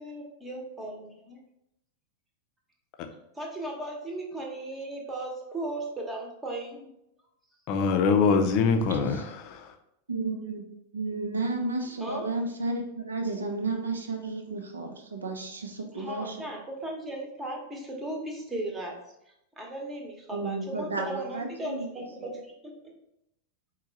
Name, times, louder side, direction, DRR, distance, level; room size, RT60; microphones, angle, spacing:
voice 1, 0.0-1.4 3.3-6.9 12.0-12.3 15.9-19.0 19.6-22.7, right 1 dB, 15° right, 1.0 m, -36 dB
voice 2, 7.7-9.7, left 5 dB, 40° left, 0.5 m, -24 dB
voice 3, 8.9-9.3 10.1-10.6 10.9-16.5 20.3-21.9, right 3 dB, 70° right, 0.6 m, -32 dB
4.5 x 2.2 x 4.0 m
figure-of-eight pair, 90°, 0 cm